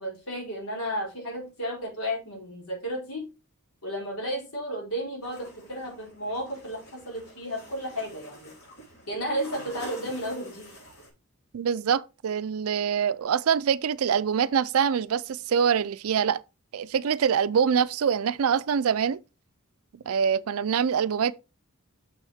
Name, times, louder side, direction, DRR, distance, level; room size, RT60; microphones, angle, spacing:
voice 1, 0.0-3.2 3.8-8.5 9.1-10.8, equal, 80° left, 4.3 m, -33 dB
sound 1, 5.2-11.1, equal, 50° left, 3.8 m, -47 dB
voice 2, 11.5-16.4 16.7-19.2 20.1-21.3, right 7 dB, 80° right, 0.4 m, -24 dB
6.4 x 6.3 x 3.5 m
head